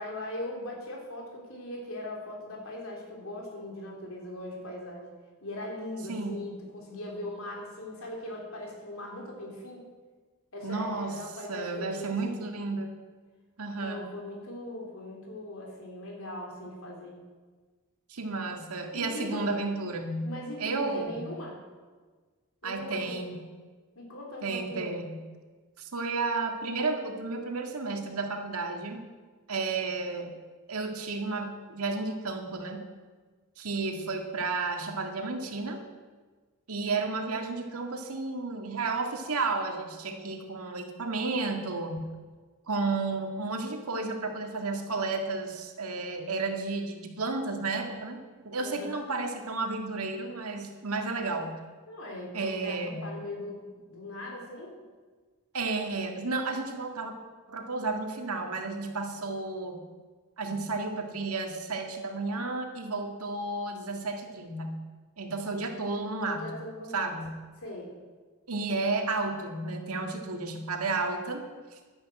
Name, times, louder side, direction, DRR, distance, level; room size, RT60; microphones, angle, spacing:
voice 1, 0.0-5.1 5.4-9.8 10.5-12.4 13.8-17.2 18.9-19.5 20.2-21.6 22.6-23.2 24.0-24.9 48.6-49.0 51.9-54.8 66.2-67.1 67.6-67.9, left 1 dB, 70° left, -1 dB, 3.6 m, -40 dB
voice 2, 6.1-6.4 10.6-11.2 11.5-12.9 13.6-14.1 18.1-20.3 20.6-21.3 22.6-23.4 24.4-25.2 25.8-29.0 29.5-30.3 30.7-32.8 33.6-35.8 36.7-42.1 42.7-48.2 48.5-51.5 52.3-53.1 55.5-57.1 57.5-59.8 60.4-64.8 65.2-66.6 66.9-67.4 68.5-71.4 71.7-71.8, right 3 dB, 85° right, 4 dB, 1.9 m, -32 dB
11.5 x 10.5 x 7.6 m, 1.4 s
head